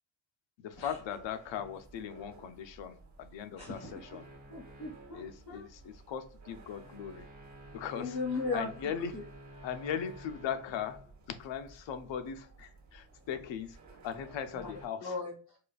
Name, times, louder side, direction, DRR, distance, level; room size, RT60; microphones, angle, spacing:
voice 1, 0.6-4.3 5.1-7.3 7.7-8.2 8.5-9.1 9.6-11.1 11.4-13.8 14.0-15.2, left 8 dB, 65° left, 0.6 m, -39 dB
sound 1, 0.7-14.9, right 2 dB, 35° right, 1.3 m, -53 dB
voice 2, 3.6-3.9 4.5-5.6 7.9-9.2 14.5-14.7 15.0-15.6, left 3 dB, 45° left, 1.1 m, -37 dB
4.9 x 2.4 x 2.3 m
cardioid pair, 125°, 49 cm